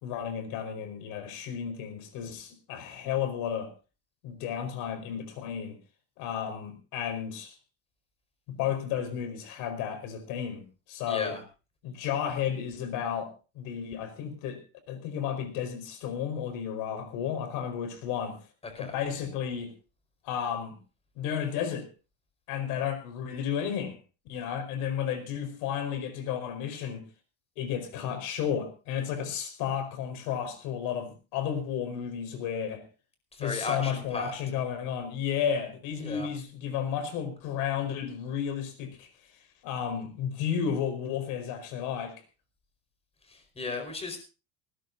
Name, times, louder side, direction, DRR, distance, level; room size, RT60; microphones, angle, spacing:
voice 1, 0.0-3.7 4.2-5.7 6.2-7.5 8.5-11.4 11.8-14.6 14.9-18.4 18.8-19.7 20.2-20.8 21.1-21.9 22.5-24.0 24.3-27.0 27.6-32.8 33.4-39.1 39.6-42.2, left 8 dB, 70° left, 9 dB, 4.9 m, -32 dB
voice 2, 11.1-11.4 18.7-18.9 33.3-34.3 36.0-36.3 43.3-44.2, left 3 dB, 20° left, 6 dB, 4.9 m, -35 dB
19.5 x 19.0 x 2.8 m, 0.33 s
cardioid pair, 140°, 33 cm